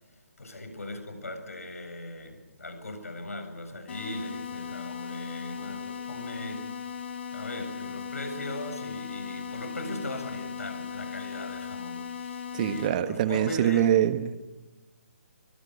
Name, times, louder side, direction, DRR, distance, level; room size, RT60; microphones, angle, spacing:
voice 1, 0.4-7.1 7.3-14.0, left 1 dB, 80° left, 7 dB, 7.7 m, -39 dB
sound 1, 3.9-12.9, left 7 dB, 45° left, 5.1 m, -38 dB
voice 2, 12.5-14.3, right 11 dB, 35° right, 11 dB, 1.4 m, -24 dB
25.5 x 24.5 x 5.8 m, 1.1 s
figure-of-eight pair, 150°, 8 cm